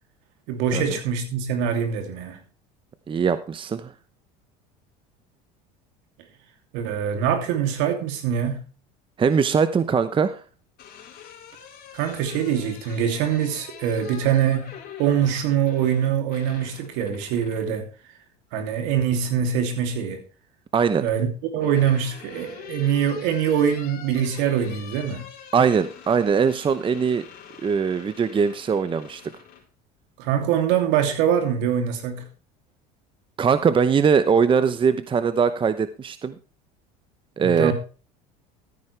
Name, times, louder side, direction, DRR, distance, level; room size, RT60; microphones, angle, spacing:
voice 1, 0.5-2.4 6.7-8.6 11.9-14.7 15.0-17.9 18.5-20.2 21.0-21.3 21.5-25.2 30.2-32.2 37.4-37.7, right 8 dB, 70° right, 2.8 m, -23 dB
voice 2, 3.1-3.9 9.2-10.4 20.7-21.0 25.5-27.3 27.6-29.2 33.4-36.3 37.4-37.7, right 6 dB, 25° right, 0.8 m, -21 dB
sound 1, 10.5-17.7 19.2-19.9 21.1-29.6, left 8 dB, 50° left, 4.2 m, -44 dB
13.5 x 9.8 x 3.3 m
supercardioid pair, 95°, 20 cm